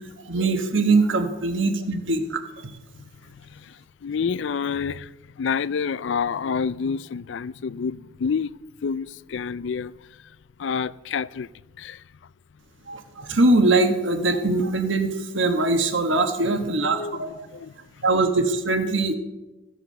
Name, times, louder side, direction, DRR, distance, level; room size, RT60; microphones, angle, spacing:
voice 1, 0.2-2.7 12.9-17.3 18.0-19.1, right 2 dB, 70° right, 1.3 m, -22 dB
voice 2, 2.9-8.5 8.8-11.5 11.8-12.3 16.5-16.6 16.9-18.1, left 6 dB, 65° left, 0.4 m, -29 dB
14.5 x 8.2 x 6.6 m
head